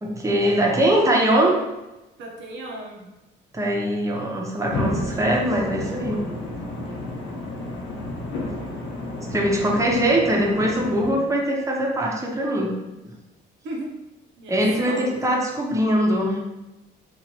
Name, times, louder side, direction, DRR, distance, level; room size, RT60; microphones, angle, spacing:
voice 1, 0.0-1.6 3.5-6.2 9.3-12.7 14.5-16.4, right 1 dB, 15° right, -2 dB, 0.7 m, -22 dB
voice 2, 2.2-3.1 13.6-13.9 14.4-15.1, right 1 dB, 75° right, 0 dB, 0.7 m, -36 dB
sound 1, 4.7-11.1, left 2 dB, 80° left, 0.8 m, -31 dB
3.0 x 2.4 x 2.8 m, 0.99 s
cardioid pair, 90°, 20 cm